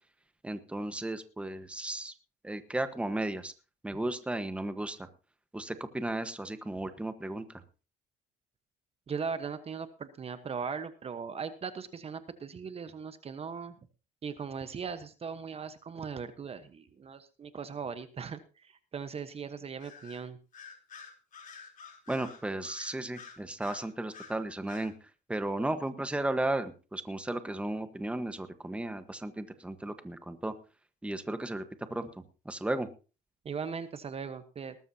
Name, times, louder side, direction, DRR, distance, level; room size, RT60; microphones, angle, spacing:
voice 1, 0.4-2.1 2.4-3.5 3.8-5.1 5.5-7.4 22.1-30.5 31.0-31.6 31.9-32.9, right 1 dB, 5° right, 10 dB, 1.3 m, -35 dB
voice 2, 9.1-13.7 14.2-20.4 33.4-34.8, right 6 dB, 35° right, 11 dB, 1.2 m, -39 dB
Bird vocalization bird call bird song, 19.8-20.2 20.5-24.4 24.7-24.9, left 5 dB, 50° left, 3.7 m, -49 dB
19.5 x 13.5 x 2.8 m, 0.34 s
cardioid pair, 110°, 17 cm